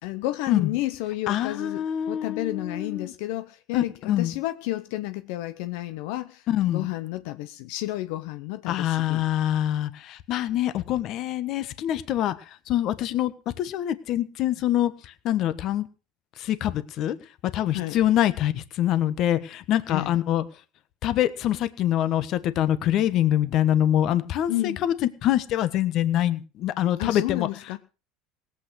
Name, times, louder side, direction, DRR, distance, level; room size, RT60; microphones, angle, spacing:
voice 1, 0.0-9.2 17.7-18.0 19.9-20.1 24.5-24.8 27.0-27.8, left 16 dB, 80° left, 0.8 m, -31 dB
voice 2, 1.3-3.1 3.7-4.3 6.5-6.9 8.7-12.3 12.7-15.9 16.4-17.2 17.5-20.4 21.0-24.9 25.2-27.5, left 12 dB, 50° left, 1.3 m, -25 dB
18.0 x 8.5 x 6.2 m
cardioid pair, 135°, 0 cm